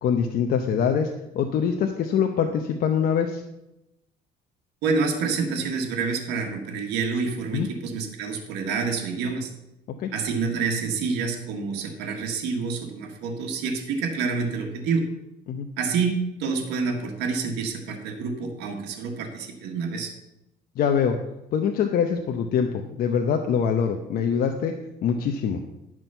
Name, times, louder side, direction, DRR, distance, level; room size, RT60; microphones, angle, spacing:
voice 1, 0.0-1.1 1.3-3.4 7.5-7.7 10.0-10.1 15.5-15.7 20.8-21.2 21.5-24.7 25.0-25.6, left 7 dB, 60° left, 4 dB, 0.8 m, -24 dB
voice 2, 4.8-9.5 10.1-15.1 15.8-20.1, right 5 dB, 90° right, 2 dB, 1.6 m, -28 dB
11.0 x 6.2 x 5.6 m, 0.90 s
cardioid pair, 110°, 17 cm